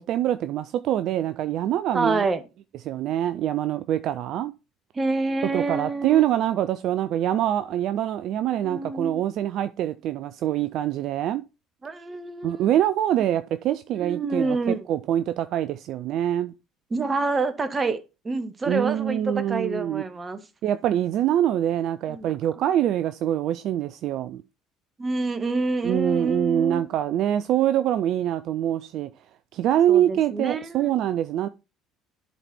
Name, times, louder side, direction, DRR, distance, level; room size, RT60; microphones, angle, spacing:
voice 1, 0.0-2.2 2.9-4.5 5.5-11.4 12.4-16.5 18.7-20.0 20.6-24.4 25.8-29.1 29.5-31.5, right 11 dB, 55° right, 0.4 m, -24 dB
voice 2, 1.9-2.4 4.9-6.3 8.6-9.2 11.8-12.7 14.0-14.9 16.9-18.0 18.2-20.4 22.1-22.3 25.0-26.9 29.9-30.9, right 3 dB, 25° right, 1.2 m, -27 dB
11.0 x 4.1 x 4.4 m
figure-of-eight pair, 60°, 0 cm